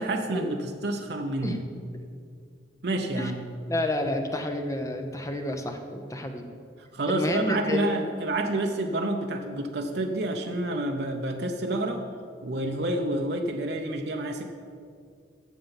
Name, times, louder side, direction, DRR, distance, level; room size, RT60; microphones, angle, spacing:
voice 1, 0.0-1.6 2.8-3.5 6.8-12.0 12.4-14.4, right 1 dB, 60° right, 3 dB, 0.7 m, -29 dB
voice 2, 3.7-6.4 7.1-7.9, left 1 dB, 15° left, 5 dB, 0.7 m, -30 dB
9.1 x 6.9 x 7.1 m, 2.3 s
head